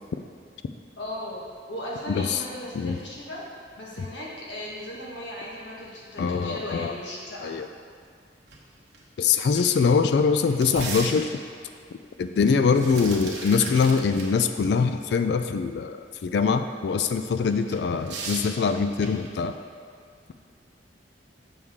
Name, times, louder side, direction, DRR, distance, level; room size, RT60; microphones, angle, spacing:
voice 1, 1.0-3.5 3.8-7.6, left 1 dB, 85° left, -5 dB, 1.5 m, -37 dB
voice 2, 2.1-2.4 2.8-3.0 6.2-6.9 7.4-7.7 9.2-11.3 12.2-19.5, left 5 dB, 65° left, 9 dB, 0.3 m, -23 dB
sound 1, 8.5-8.6 8.9-9.0 9.4-11.6 12.5-14.3 14.6-14.7 17.5-19.4, right 3 dB, 70° right, 1.1 m, -37 dB
7.1 x 6.3 x 3.6 m, 2.1 s
head